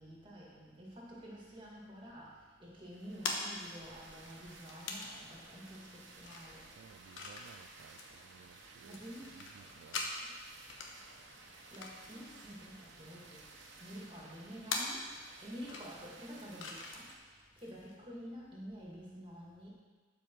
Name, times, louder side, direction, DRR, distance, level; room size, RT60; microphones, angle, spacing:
voice 1, 0.0-6.7 8.8-9.4 11.4-15.1 15.4-17.0 17.6-19.7, equal, 25° right, -4 dB, 2.2 m, -49 dB
sound 1, 1.2-18.0, left 3 dB, 85° left, 1.1 m, -46 dB
sound 2, 2.8-17.1, right 3 dB, 70° right, 1.2 m, -56 dB
voice 2, 6.7-10.1 13.3-13.4, right 6 dB, 90° right, 10 dB, 0.3 m, -58 dB
12.0 x 5.2 x 4.6 m, 1.4 s
head